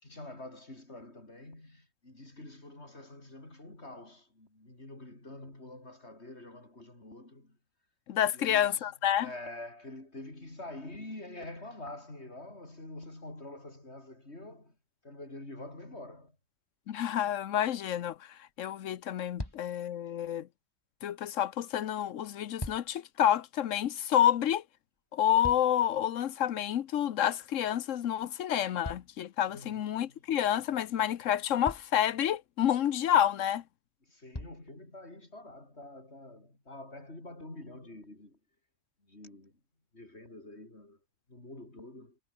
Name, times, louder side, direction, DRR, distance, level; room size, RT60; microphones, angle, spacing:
voice 1, 0.0-7.6 8.3-8.9 9.2-14.8 15.0-16.4 19.4-19.5 29.5-30.2 34.1-38.4 39.0-39.6 39.9-41.0 41.3-42.2, left 2 dB, 55° left, 5.9 m, -46 dB
voice 2, 8.1-9.3 16.9-20.5 21.0-24.6 25.1-33.6, left 10 dB, 80° left, 1.2 m, -29 dB
sound 1, 19.4-19.9 22.2-23.1 24.9-26.0 28.8-29.8 31.0-31.1 31.6-32.1 33.5-33.6 34.3-34.7 35.5-35.6, left 1 dB, 20° left, 3.2 m, -42 dB
omnidirectional pair, 1.3 m